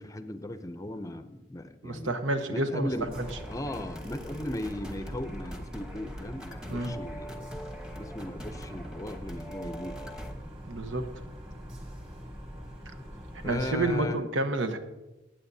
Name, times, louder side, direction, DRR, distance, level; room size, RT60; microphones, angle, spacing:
voice 1, 0.0-2.1 2.5-3.1 3.5-7.5 7.9-10.2 13.4-14.2, left 1 dB, 15° left, 9 dB, 0.5 m, -37 dB
voice 2, 1.8-2.9 3.1-3.3 6.7-6.9 10.7-11.2 13.4-14.8, right 2 dB, 90° right, 8 dB, 1.0 m, -29 dB
sound 1, 2.8-14.0, equal, 30° right, 2.2 m, -43 dB
sound 2, 3.1-10.3, equal, 5° right, 0.9 m, -43 dB
19.5 x 8.8 x 2.7 m, 1.0 s
head